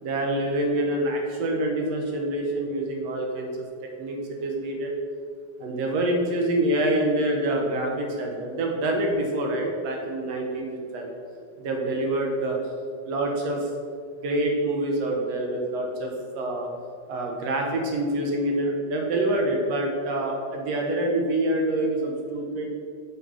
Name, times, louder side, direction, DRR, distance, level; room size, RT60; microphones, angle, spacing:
voice 1, 0.0-3.5 4.0-4.9 5.6-11.1 11.6-12.6 13.1-13.7 14.2-16.7 17.1-22.7, right 1 dB, 65° right, 0 dB, 2.2 m, -26 dB
7.6 x 5.5 x 6.4 m, 2.1 s
omnidirectional pair, 3.3 m